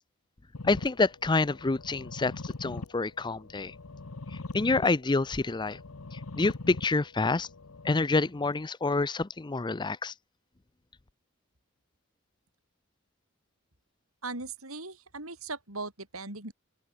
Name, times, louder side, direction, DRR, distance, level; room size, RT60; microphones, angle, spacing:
sound 1, 0.5-8.5, left 3 dB, 85° left, 1.0 m, -43 dB
voice 1, 0.6-3.7 4.5-5.8 6.1-7.5 7.8-10.1, left 3 dB, 20° left, 0.5 m, -27 dB
voice 2, 14.2-16.5, right 3 dB, 80° right, 7.8 m, -39 dB
open air
head